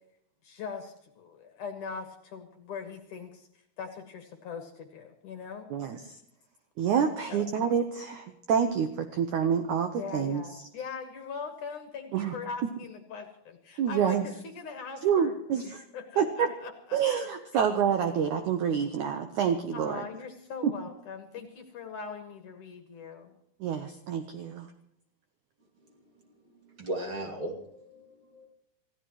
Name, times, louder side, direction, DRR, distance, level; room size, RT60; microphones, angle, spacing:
voice 1, 0.4-3.5 3.8-5.7 7.3-7.5 10.0-15.4 15.9-17.0 17.5-17.6 19.7-23.4, left 5 dB, 60° left, 5 dB, 2.4 m, -41 dB
voice 2, 6.8-10.4 12.1-12.4 13.8-14.3 15.0-15.8 16.2-16.5 16.9-20.0 20.6-20.7 23.6-24.7, right 7 dB, 80° right, 7 dB, 1.8 m, -27 dB
voice 3, 26.7-28.5, right 1 dB, 35° right, 1 dB, 2.6 m, -37 dB
27.5 x 16.0 x 3.1 m, 0.75 s
omnidirectional pair, 5.0 m